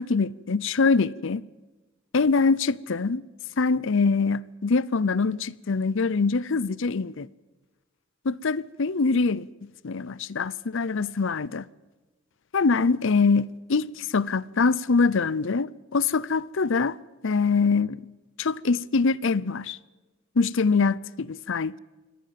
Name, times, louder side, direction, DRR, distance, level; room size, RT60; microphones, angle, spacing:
voice 1, 0.0-1.4 2.1-3.2 3.6-7.3 8.2-9.5 9.8-11.6 12.5-17.0 17.2-18.1 18.4-19.8 20.4-21.8, left 4 dB, 65° left, 0.7 m, -24 dB
25.0 x 18.5 x 7.6 m
head